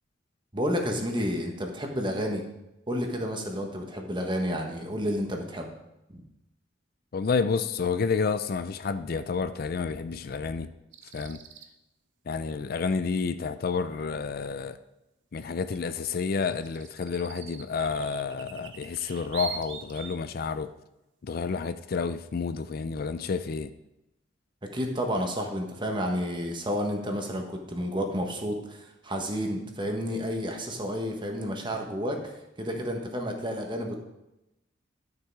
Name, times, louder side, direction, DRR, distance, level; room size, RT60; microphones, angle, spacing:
voice 1, 0.5-2.4 2.9-5.7 6.1-6.2 24.7-32.3 32.6-34.0, equal, 25° right, 1.4 m, -30 dB
voice 2, 7.1-10.7 11.1-11.4 12.3-14.8 15.3-20.7 21.2-23.7, left 5 dB, 50° left, 0.4 m, -30 dB
sound 1, 10.9-11.7 15.7-15.8 16.2-20.2, right 7 dB, 70° right, 0.8 m, -42 dB
11.5 x 6.7 x 4.7 m
head